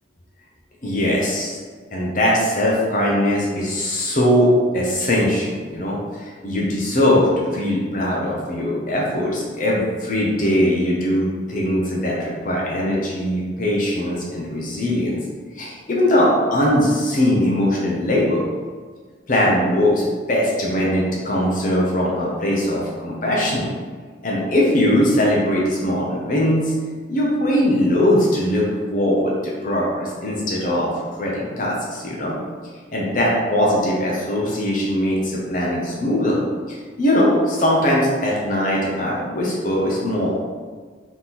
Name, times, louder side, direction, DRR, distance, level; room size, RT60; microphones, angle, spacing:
voice 1, 0.8-1.6 1.9-15.2 15.5-18.4 19.3-23.7 24.2-26.7 27.1-30.9 31.2-32.3 32.9-36.4 36.7-40.3, left 1 dB, 45° left, -4 dB, 0.7 m, -20 dB
3.7 x 3.1 x 4.1 m, 1.5 s
head